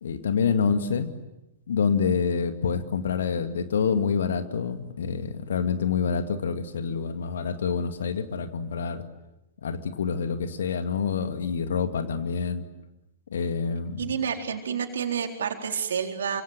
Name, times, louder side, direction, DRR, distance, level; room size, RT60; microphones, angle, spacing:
voice 1, 0.0-1.1 1.7-9.0 9.6-12.6 13.3-14.1, left 6 dB, 65° left, 8 dB, 2.2 m, -27 dB
voice 2, 14.0-16.4, right 7 dB, 65° right, 3 dB, 4.2 m, -29 dB
29.0 x 26.0 x 7.6 m, 0.93 s
figure-of-eight pair, 105°, 0 cm